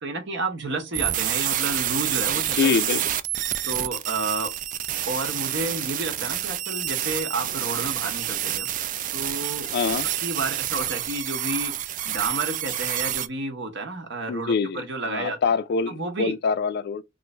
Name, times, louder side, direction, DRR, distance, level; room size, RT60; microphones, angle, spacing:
voice 1, 0.0-2.8 3.7-4.5 5.1-8.7 9.1-9.7 10.2-15.4 15.9-16.4, right 3 dB, 60° right, 0.9 m, -31 dB
sound 1, 0.9-13.3, right 11 dB, 40° right, 0.3 m, -28 dB
voice 2, 2.6-3.0 9.7-10.1 14.3-14.8 15.1-17.0, left 5 dB, 50° left, 0.3 m, -24 dB
3.1 x 2.6 x 3.2 m
head